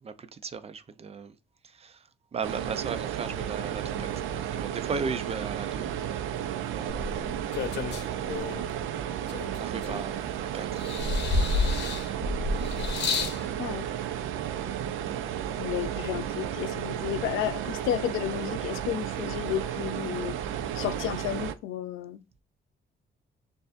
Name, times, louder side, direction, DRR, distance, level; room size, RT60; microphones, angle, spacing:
voice 1, 0.0-1.4 1.6-5.9 6.3-7.5 7.8-8.7 9.5-11.1 15.0-16.4, right 5 dB, 30° right, 0.5 m, -38 dB
sound 1, 2.4-21.5, right 10 dB, 80° right, 0.5 m, -33 dB
sound 2, 6.9-8.7 9.3-10.4 10.8-13.4 14.3-14.4, left 3 dB, 60° left, 0.9 m, -30 dB
voice 2, 15.6-20.4 20.7-22.2, left 11 dB, 85° left, 0.5 m, -32 dB
6.6 x 2.6 x 2.5 m
cardioid pair, 90°, 20 cm